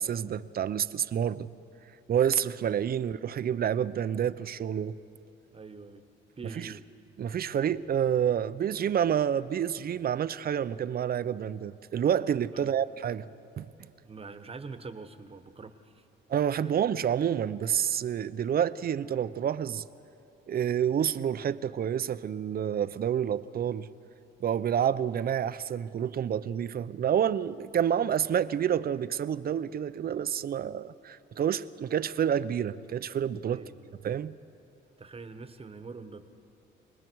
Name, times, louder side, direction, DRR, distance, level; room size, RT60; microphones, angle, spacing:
voice 1, 0.0-1.5 2.1-5.0 6.6-6.7 7.2-13.3 13.6-13.7 16.3-19.8 20.5-23.9 24.4-33.6 34.0-34.4, right 9 dB, 50° right, 0.6 m, -28 dB
voice 2, 5.5-6.0 6.4-6.9 12.5-12.7 14.0-16.0 16.6-16.7 33.5-33.9 35.0-36.3, right 4 dB, 30° right, 1.2 m, -44 dB
29.0 x 20.5 x 4.7 m
cardioid pair, 90°, 20 cm